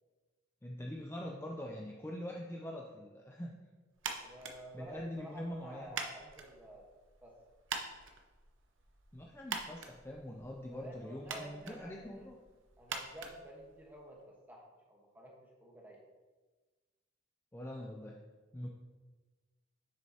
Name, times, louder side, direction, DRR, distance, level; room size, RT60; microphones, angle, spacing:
voice 1, 0.6-3.5 4.7-5.9 9.1-12.4 17.5-18.2 18.5-18.7, left 1 dB, 15° left, -1 dB, 0.5 m, -43 dB
sound 1, 4.0-14.2, right 5 dB, 90° right, 0.7 m, -46 dB
voice 2, 4.2-6.8 7.2-7.3 10.7-12.3 12.8-14.6 14.9-16.0, right 1 dB, 10° right, -1 dB, 1.2 m, -51 dB
7.4 x 6.5 x 2.8 m, 1.3 s
head